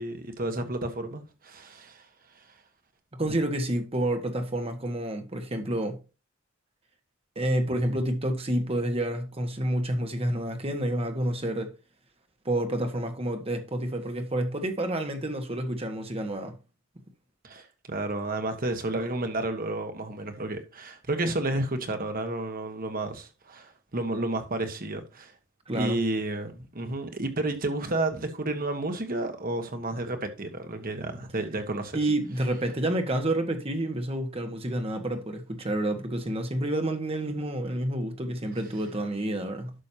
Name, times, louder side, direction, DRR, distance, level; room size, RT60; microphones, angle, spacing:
voice 1, 0.0-2.0 17.4-25.3 25.7-32.0, right 2 dB, 45° right, 1.4 m, -31 dB
voice 2, 3.1-6.0 7.3-11.7 12.4-16.6 25.7-26.0 31.9-39.7, right 1 dB, 30° right, 1.5 m, -29 dB
11.5 x 6.4 x 2.9 m
head